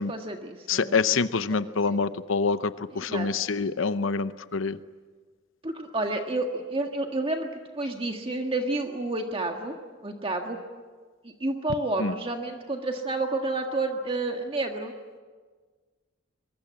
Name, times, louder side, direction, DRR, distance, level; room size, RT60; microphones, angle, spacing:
voice 1, 0.0-1.0 1.5-2.0 2.9-3.3 5.6-9.8 10.0-10.6 11.2-14.9, right 2 dB, 25° right, 3 dB, 1.6 m, -30 dB
voice 2, 0.7-4.8 12.0-12.1, left 4 dB, 75° left, 13 dB, 0.8 m, -26 dB
23.5 x 23.0 x 8.6 m, 1.5 s
head